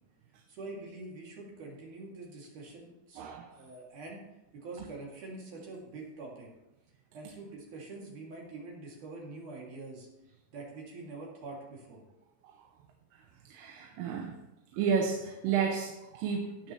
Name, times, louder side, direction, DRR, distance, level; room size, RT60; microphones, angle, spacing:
voice 1, 0.5-3.2 3.5-4.2 4.5-6.5 7.1-10.1 10.5-12.0, right 3 dB, 55° right, -2 dB, 3.8 m, -45 dB
voice 2, 3.2-3.5 13.5-14.4 14.7-16.7, right 6 dB, 85° right, 4 dB, 2.8 m, -32 dB
17.0 x 7.5 x 3.1 m, 0.93 s
omnidirectional pair, 4.5 m